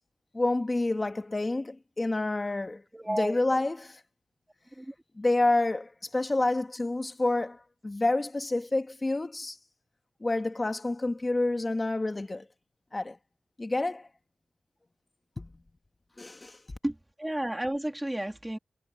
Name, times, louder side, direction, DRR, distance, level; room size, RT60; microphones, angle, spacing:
voice 1, 0.3-2.8 3.1-4.0 5.2-9.6 10.2-12.4 12.9-13.2 13.6-14.1 15.4-15.5 16.2-16.6, left 2 dB, 20° left, 1.6 m, -28 dB
voice 2, 2.9-3.7 4.8-4.9 16.8-18.6, right 1 dB, 10° right, 2.9 m, -32 dB
wide cardioid pair, 155°, 0 cm